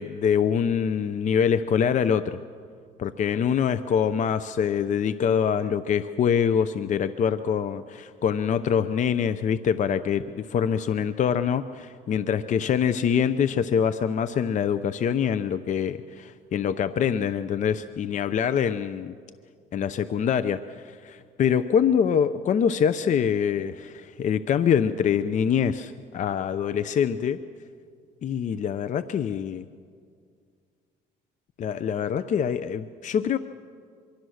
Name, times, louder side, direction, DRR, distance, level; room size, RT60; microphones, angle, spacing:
voice 1, 0.0-2.4 3.0-19.1 19.7-27.4 28.2-29.6 31.6-33.4, left 7 dB, 45° left, 13 dB, 0.7 m, -24 dB
25.0 x 23.5 x 6.5 m, 2.1 s
cardioid pair, 110°, 17 cm